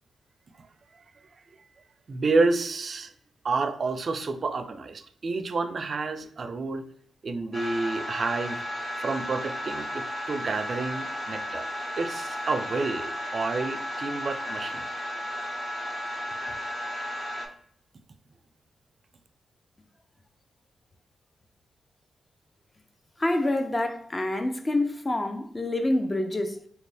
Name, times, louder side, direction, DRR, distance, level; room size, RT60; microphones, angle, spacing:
voice 1, 2.1-3.1 3.4-6.8 7.2-8.6 9.0-11.6 12.0-14.8, right 3 dB, 50° right, 0.4 m, -29 dB
sound 1, 7.5-17.5, equal, 50° left, 1.5 m, -34 dB
voice 2, 23.2-26.6, left 1 dB, 25° left, 0.6 m, -27 dB
4.5 x 2.6 x 3.3 m
cardioid pair, 85°, 0 cm